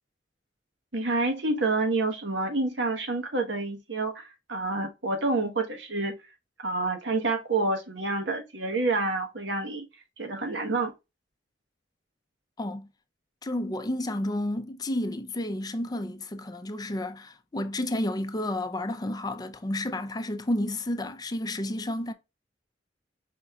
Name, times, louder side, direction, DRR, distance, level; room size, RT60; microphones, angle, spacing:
voice 1, 0.9-6.2 6.6-9.8 10.2-10.9, right 3 dB, 80° right, 1.2 m, -28 dB
voice 2, 12.6-12.9 13.4-22.1, left 1 dB, 20° left, 0.5 m, -31 dB
5.1 x 3.5 x 2.3 m
head